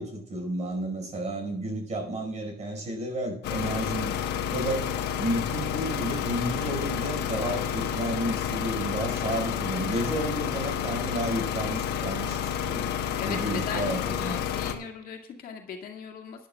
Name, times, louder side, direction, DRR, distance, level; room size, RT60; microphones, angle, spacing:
voice 1, 0.0-4.1 4.5-4.9 5.2-12.9 13.2-14.4, right 1 dB, 45° right, 2 dB, 4.7 m, -32 dB
sound 1, 3.4-14.7, left 9 dB, 80° left, 1.2 m, -30 dB
voice 2, 9.7-10.1 13.2-16.5, left 7 dB, 60° left, 2 dB, 2.0 m, -38 dB
18.5 x 11.0 x 2.3 m, 0.72 s
cardioid pair, 110°, 17 cm